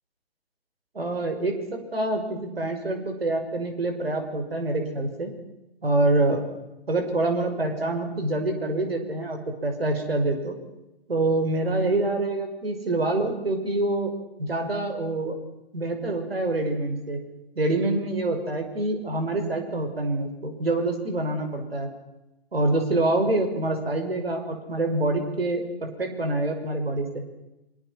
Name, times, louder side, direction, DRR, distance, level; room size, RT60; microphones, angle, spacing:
voice 1, 0.9-5.3 5.8-6.4 6.9-10.6 11.1-14.1 14.4-15.4 15.7-17.2 17.6-21.9 22.5-27.2, right 2 dB, 70° right, 5 dB, 6.0 m, -26 dB
27.5 x 26.5 x 6.0 m, 0.95 s
figure-of-eight pair, 125°, 31 cm